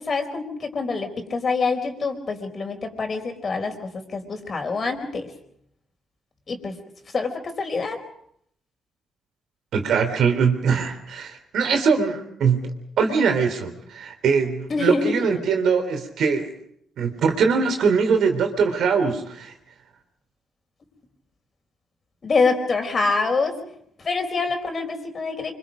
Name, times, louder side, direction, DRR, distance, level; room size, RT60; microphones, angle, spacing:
voice 1, 0.0-3.8 4.1-5.3 6.5-6.7 7.1-8.0 14.7-15.4 22.2-23.6 24.0-25.5, left 4 dB, 40° left, 5 dB, 4.4 m, -25 dB
voice 2, 9.7-16.5 17.0-19.5, right 5 dB, 70° right, 6 dB, 3.4 m, -22 dB
25.5 x 25.0 x 5.2 m, 0.72 s
cardioid pair, 90°, 0 cm